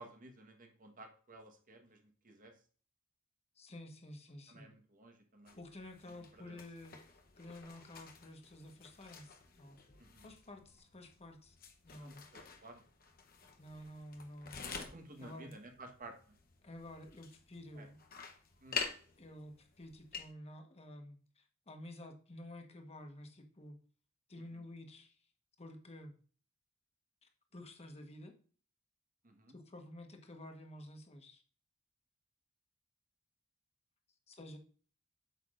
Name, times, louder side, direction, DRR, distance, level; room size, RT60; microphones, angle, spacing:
voice 1, 0.0-2.5 4.5-5.6 6.1-6.6 10.0-10.3 12.0-12.8 14.8-16.3 17.7-17.9 18.6-18.9 24.5-24.6 29.2-29.5, right 2 dB, 40° right, 4 dB, 1.4 m, -54 dB
voice 2, 3.5-4.7 5.5-9.8 10.2-11.6 11.8-12.2 13.6-14.6 15.2-15.5 16.6-18.0 19.2-23.8 24.3-25.3 25.6-26.1 27.2-28.3 29.5-31.4 34.3-34.6, left 1 dB, 30° left, 4 dB, 1.3 m, -51 dB
sound 1, 5.5-20.3, left 5 dB, 45° left, 0.9 m, -49 dB
8.1 x 6.9 x 2.5 m, 0.41 s
head